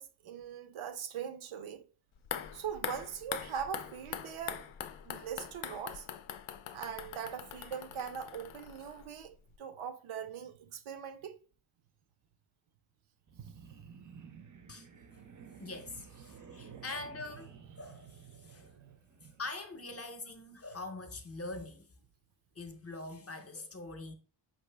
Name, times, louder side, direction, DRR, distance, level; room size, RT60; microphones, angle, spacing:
voice 1, 0.0-1.9 2.5-4.7 5.0-6.1 6.7-11.4 16.7-16.8, right 8 dB, 85° right, 0.6 m, -41 dB
sound 1, 2.2-9.3 9.5-9.6, left 9 dB, 80° left, 0.5 m, -43 dB
sound 2, 13.3-19.5, right 7 dB, 40° right, 0.5 m, -52 dB
voice 2, 15.6-18.7 19.2-21.9 22.5-24.1, left 3 dB, 30° left, 0.6 m, -44 dB
5.3 x 2.8 x 3.2 m
wide cardioid pair, 125°, 48 cm